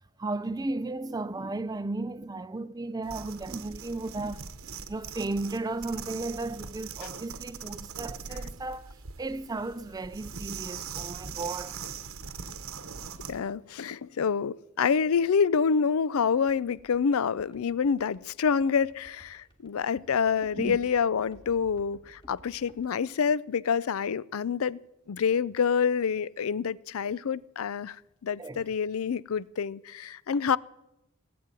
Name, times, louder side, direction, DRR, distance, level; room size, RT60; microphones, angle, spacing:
voice 1, 0.2-8.9 9.2-11.7 20.6-20.8 28.4-28.6, right 2 dB, 20° right, 0.4 m, -35 dB
sound 1, 3.0-13.4, right 6 dB, 80° right, 1.1 m, -41 dB
voice 2, 13.3-24.8 25.1-30.6, left 6 dB, 80° left, 0.4 m, -27 dB
sound 2, 16.2-22.9, equal, 25° left, 2.0 m, -55 dB
18.0 x 7.8 x 8.9 m
head